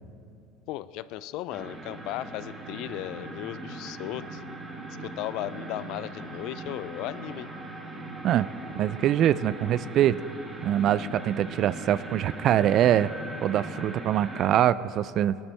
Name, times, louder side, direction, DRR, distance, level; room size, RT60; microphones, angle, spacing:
voice 1, 0.7-4.4 5.0-7.5, left 14 dB, 65° left, 16 dB, 0.4 m, -36 dB
sound 1, 1.5-14.5, right 1 dB, 20° right, 1.6 m, -40 dB
Organ, 1.5-11.8, right 8 dB, 75° right, 3.2 m, -53 dB
voice 2, 8.8-10.2 10.6-13.1 13.4-15.4, right 11 dB, 50° right, 18 dB, 0.3 m, -23 dB
18.5 x 12.5 x 3.4 m, 2.7 s
supercardioid pair, 100°, 0 cm